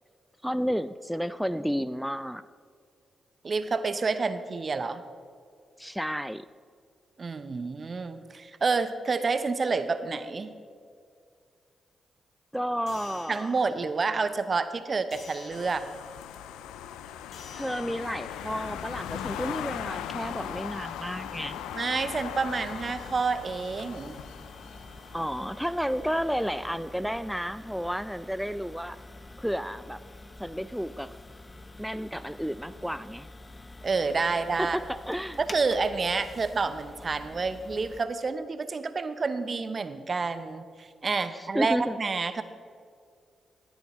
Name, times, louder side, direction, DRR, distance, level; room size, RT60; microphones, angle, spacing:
voice 1, 0.4-2.4 5.8-6.5 12.5-13.5 17.5-21.6 25.1-29.0 29.4-30.0 30.4-31.2 31.8-33.3 34.6-35.4 41.3-42.0, equal, ahead, 13 dB, 0.4 m, -31 dB
voice 2, 3.4-5.0 7.2-10.5 13.3-15.9 21.7-24.2 33.8-34.8 35.4-42.4, right 4 dB, 50° right, 11 dB, 0.8 m, -29 dB
sound 1, 12.9-17.9, left 4 dB, 70° left, 1.9 m, -50 dB
sound 2, 15.5-26.3, left 10 dB, 85° left, 0.4 m, -39 dB
sound 3, 18.3-38.0, left 2 dB, 30° left, 0.9 m, -47 dB
17.5 x 10.5 x 3.2 m, 2.2 s
hypercardioid pair, 40°, 0 cm